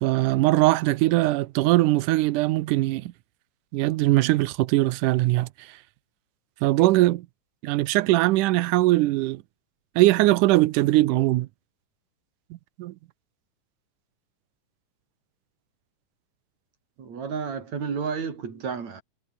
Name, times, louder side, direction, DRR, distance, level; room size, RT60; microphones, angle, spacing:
voice 1, 0.0-3.1 3.7-5.5 6.6-7.3 7.6-9.4 10.0-11.5 12.8-12.9, right 17 dB, 85° right, 2.3 m, -21 dB
voice 2, 17.0-19.0, right 6 dB, 60° right, 4.8 m, -31 dB
omnidirectional pair, 3.6 m